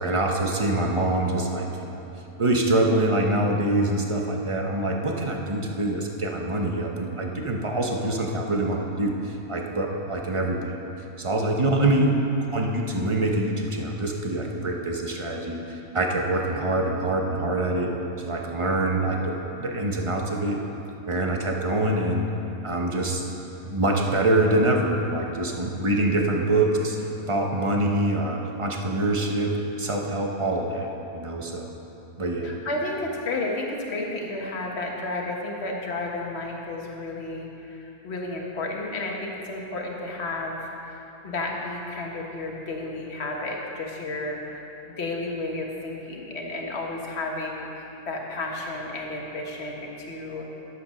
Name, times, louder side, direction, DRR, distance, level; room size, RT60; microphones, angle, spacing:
voice 1, 0.0-2.0 2.4-10.8 11.2-12.1 12.5-17.9 18.2-20.6 21.1-22.3 22.6-23.2 23.6-27.0 27.3-30.9 31.1-31.7 32.2-32.5, right 1 dB, 25° right, 1 dB, 0.9 m, -25 dB
voice 2, 32.4-50.5, left 2 dB, 45° left, -1 dB, 1.6 m, -32 dB
12.0 x 8.0 x 6.4 m, 2.9 s
omnidirectional pair, 1.6 m